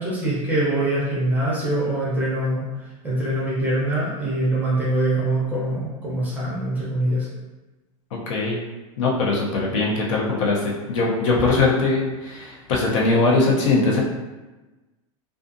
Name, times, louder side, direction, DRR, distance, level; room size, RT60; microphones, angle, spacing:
voice 1, 0.0-2.6 3.0-7.3, right 1 dB, 10° right, -7 dB, 0.6 m, -23 dB
voice 2, 8.1-8.6 9.0-14.0, left 3 dB, 60° left, -3 dB, 0.7 m, -21 dB
2.4 x 2.4 x 2.5 m, 1.1 s
supercardioid pair, 155°, 18 cm